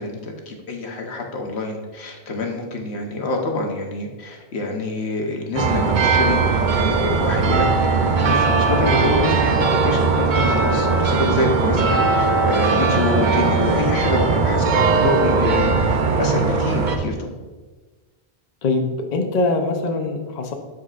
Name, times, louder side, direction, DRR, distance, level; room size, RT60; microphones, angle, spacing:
voice 1, 0.0-17.4, left 2 dB, 70° left, 2 dB, 1.2 m, -26 dB
sound 1, 5.6-17.0, right 4 dB, 50° right, 0.7 m, -19 dB
voice 2, 18.6-20.5, left 3 dB, 45° left, 3 dB, 0.7 m, -22 dB
12.5 x 4.2 x 2.5 m, 1.3 s
omnidirectional pair, 1.1 m